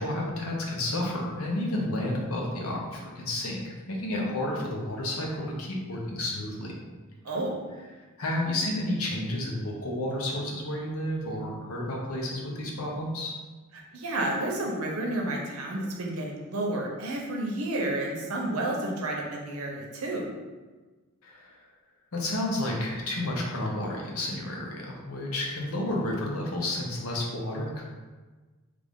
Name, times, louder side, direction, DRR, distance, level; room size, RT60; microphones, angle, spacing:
voice 1, 0.0-6.7 8.2-13.3 21.2-21.6 22.1-27.8, left 1 dB, 85° left, -1 dB, 0.8 m, -31 dB
voice 2, 13.7-20.3, right 1 dB, 85° right, -1 dB, 0.8 m, -31 dB
3.3 x 2.5 x 3.6 m, 1.3 s
head